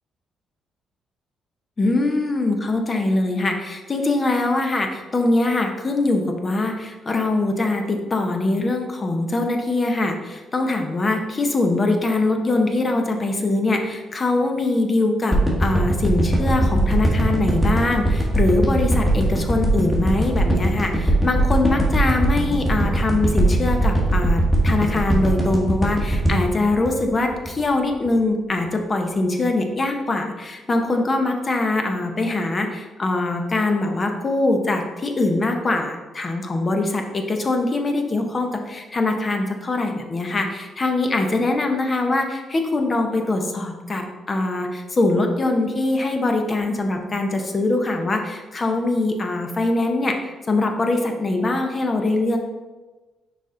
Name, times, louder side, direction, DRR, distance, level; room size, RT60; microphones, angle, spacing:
voice 1, 1.8-52.4, left 2 dB, 35° left, 4 dB, 0.9 m, -22 dB
sound 1, 15.3-27.6 28.1-28.2, right 1 dB, 5° left, 1.6 m, -20 dB
6.0 x 4.3 x 3.9 m, 1.2 s
cardioid pair, 90°, 0 cm